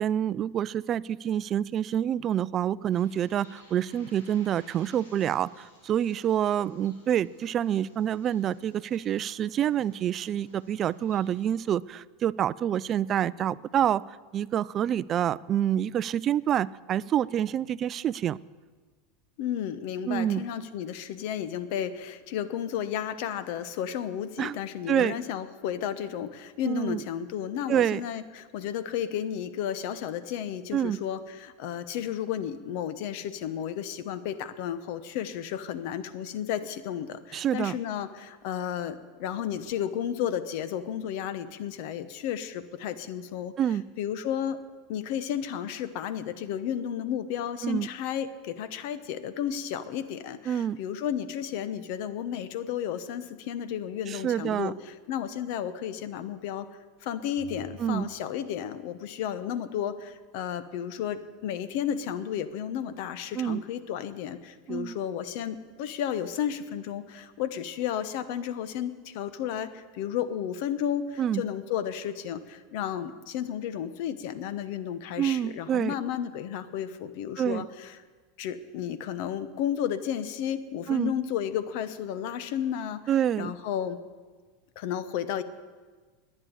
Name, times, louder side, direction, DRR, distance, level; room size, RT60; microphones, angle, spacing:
voice 1, 0.0-18.4 20.1-20.4 24.4-24.5 24.9-25.1 26.6-27.0 27.7-28.0 30.7-31.0 37.3-37.8 43.6-43.9 47.6-47.9 50.5-50.8 54.1-54.7 57.8-58.1 63.3-63.6 64.7-65.0 71.2-71.4 75.2-75.9 77.4-77.7 80.9-81.1 83.1-83.5, right 10 dB, 40° right, 20 dB, 0.3 m, -27 dB
Bird, 2.9-11.4, left 1 dB, 90° left, 3.3 m, -58 dB
voice 2, 19.4-43.5 44.0-44.6 44.9-56.7 57.0-78.0 78.4-83.0 83.4-84.0 84.8-85.4, left 9 dB, 65° left, 13 dB, 0.9 m, -33 dB
sound 1, 57.4-59.2, left 5 dB, 15° left, 3.0 m, -51 dB
11.0 x 9.7 x 8.6 m, 1.4 s
hypercardioid pair, 100°, 0 cm